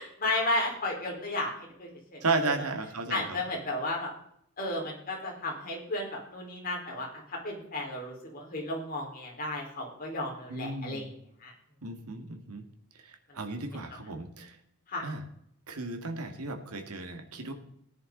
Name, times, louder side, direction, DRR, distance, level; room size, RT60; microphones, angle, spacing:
voice 1, 0.0-2.5 3.1-4.1 4.6-11.1 11.4-11.5 14.9-15.0, left 2 dB, 40° left, -1 dB, 4.3 m, -34 dB
voice 2, 2.2-3.4 10.5-11.1 11.8-12.7 13.0-14.6 15.0-15.2 15.7-17.5, right 3 dB, 85° right, 6 dB, 2.0 m, -34 dB
16.5 x 10.5 x 3.9 m, 0.70 s
head